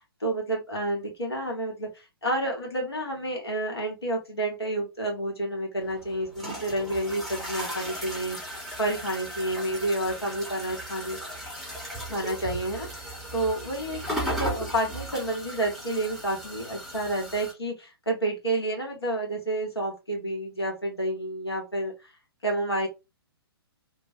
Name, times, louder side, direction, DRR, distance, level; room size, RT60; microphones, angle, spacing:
voice 1, 0.2-11.2 12.1-13.1 13.3-22.1 22.4-22.9, right 1 dB, 80° left, 1.2 m, -30 dB
sound 1, 5.8-17.5, right 1 dB, ahead, 0.7 m, -36 dB
2.5 x 2.1 x 2.6 m
figure-of-eight pair, 120°, 13 cm